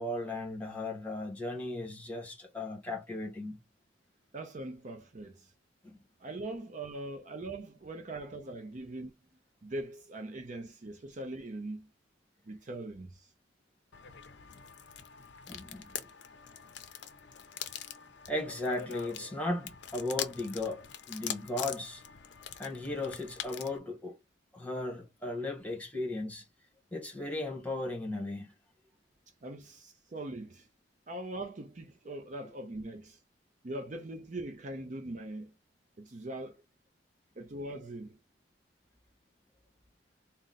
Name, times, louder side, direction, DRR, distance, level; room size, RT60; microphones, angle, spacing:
voice 1, 0.0-3.6 5.8-6.0 15.5-15.8 18.3-22.0 22.6-24.2 24.5-26.4 26.9-28.5, left 2 dB, 5° left, 1.1 m, -36 dB
voice 2, 4.3-5.5 6.2-9.1 9.6-11.9 12.5-13.3 29.4-30.7 31.1-33.2 33.6-35.5 36.0-36.6 37.4-38.2, right 2 dB, 40° right, 0.5 m, -41 dB
sound 1, 13.9-23.8, left 9 dB, 60° left, 0.5 m, -43 dB
3.9 x 2.1 x 3.9 m
head